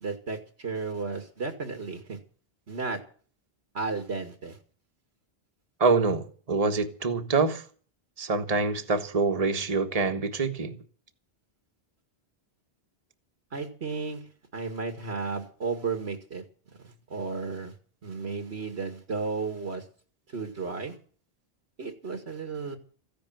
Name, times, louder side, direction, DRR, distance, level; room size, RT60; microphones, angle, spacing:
voice 1, 0.0-2.2 2.7-3.0 3.7-4.6 13.5-14.2 14.5-16.4 16.8-17.7 18.0-19.8 20.3-21.0 21.8-22.8, right 4 dB, 90° right, 2.4 m, -33 dB
voice 2, 5.8-7.6 8.2-10.8, right 4 dB, 35° right, 1.4 m, -25 dB
15.0 x 10.5 x 7.8 m
omnidirectional pair, 1.1 m